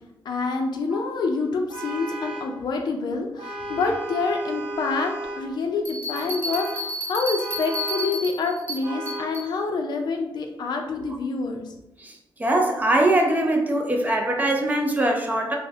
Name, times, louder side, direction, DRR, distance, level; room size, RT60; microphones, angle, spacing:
voice 1, 0.3-11.6, left 4 dB, 55° left, 3 dB, 0.4 m, -27 dB
Vehicle horn car horn honking, 1.7-2.6 3.4-5.6 6.1-6.9 7.4-8.2 8.8-9.4, right 1 dB, 80° right, 0.5 m, -34 dB
sound 1, 5.8-9.5, equal, 20° left, 0.8 m, -32 dB
voice 2, 12.4-15.6, right 1 dB, 20° right, 1 dB, 0.3 m, -22 dB
3.0 x 2.0 x 2.7 m, 0.87 s
wide cardioid pair, 160°, 9 cm